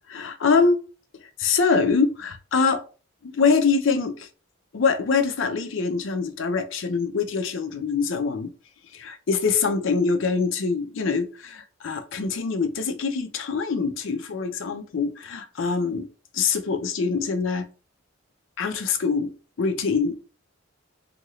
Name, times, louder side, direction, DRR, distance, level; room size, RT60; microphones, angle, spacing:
voice 1, 0.1-0.8 1.4-2.8 3.2-4.3 4.7-8.5 8.9-16.1 16.3-17.7 18.6-19.3 19.6-20.1, left 5 dB, 65° left, 0.4 m, -24 dB
2.7 x 2.5 x 3.1 m
head